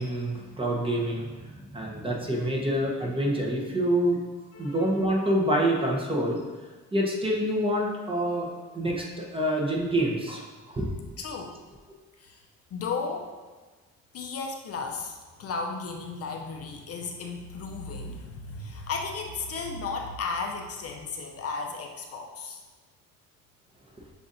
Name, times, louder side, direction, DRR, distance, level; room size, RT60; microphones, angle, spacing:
voice 1, 0.0-4.2 4.6-6.4 6.9-10.9, right 1 dB, 20° right, -2 dB, 0.8 m, -27 dB
voice 2, 4.5-5.1 11.2-11.5 12.2-12.4 12.7-13.3 14.1-22.6, left 4 dB, 55° left, 2 dB, 0.5 m, -34 dB
6.7 x 2.6 x 2.6 m, 1.3 s
cardioid pair, 90°, 30 cm